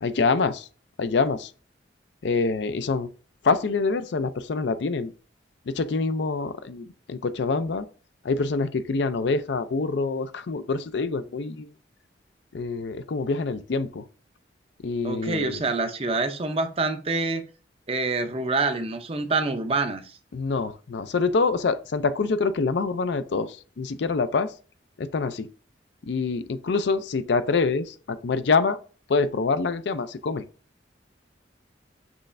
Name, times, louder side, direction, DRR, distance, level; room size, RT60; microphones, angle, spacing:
voice 1, 0.0-0.7 1.0-1.5 2.2-3.1 3.4-5.1 5.7-7.9 8.2-11.7 12.5-14.0 14.8-15.6 20.3-24.5 25.0-25.5 26.0-28.8 29.1-30.4, left 4 dB, 70° left, 0.4 m, -25 dB
voice 2, 15.0-17.4 17.9-20.2, right 3 dB, 30° right, 0.5 m, -26 dB
6.2 x 3.2 x 2.5 m
head